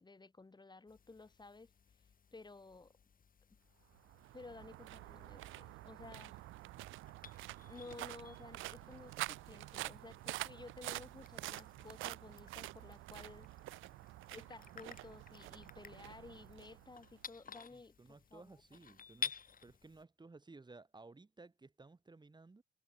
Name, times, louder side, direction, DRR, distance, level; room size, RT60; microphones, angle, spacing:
voice 1, 0.0-1.7 2.3-2.9 4.3-6.4 7.6-13.5 14.3-17.9 18.3-18.6, left 3 dB, 20° left, 2.6 m, -54 dB
sound 1, 0.9-20.0, left 6 dB, 45° left, 6.6 m, -53 dB
sound 2, 3.9-17.3, right 18 dB, 90° right, 0.5 m, -48 dB
voice 2, 17.7-19.4 19.6-22.6, right 3 dB, 20° right, 3.1 m, -57 dB
cardioid pair, 90°, 20 cm